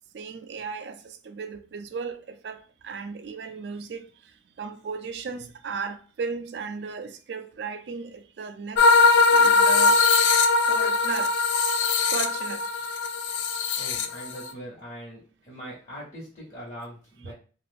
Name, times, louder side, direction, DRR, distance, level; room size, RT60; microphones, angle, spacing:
voice 1, 0.1-4.1 4.6-8.8 9.3-10.0 10.7-11.3 12.1-12.6 17.2-17.3, right 5 dB, 75° right, 0.4 m, -35 dB
sound 1, 8.8-14.5, left 4 dB, 90° left, 0.3 m, -20 dB
voice 2, 13.8-17.3, equal, 45° left, 1.0 m, -41 dB
2.5 x 2.4 x 3.4 m
head